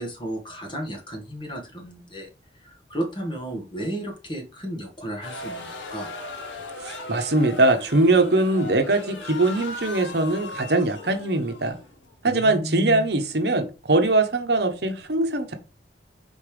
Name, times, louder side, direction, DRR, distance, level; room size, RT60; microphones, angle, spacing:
voice 1, 0.0-2.3 2.6-6.1 12.2-13.1, right 1 dB, 25° left, 2 dB, 1.7 m, -33 dB
sound 1, 5.2-12.4, left 2 dB, 90° left, 1.4 m, -38 dB
voice 2, 6.8-11.8 12.2-15.5, right 2 dB, 65° right, 7 dB, 0.9 m, -22 dB
5.3 x 4.1 x 5.0 m, 0.32 s
head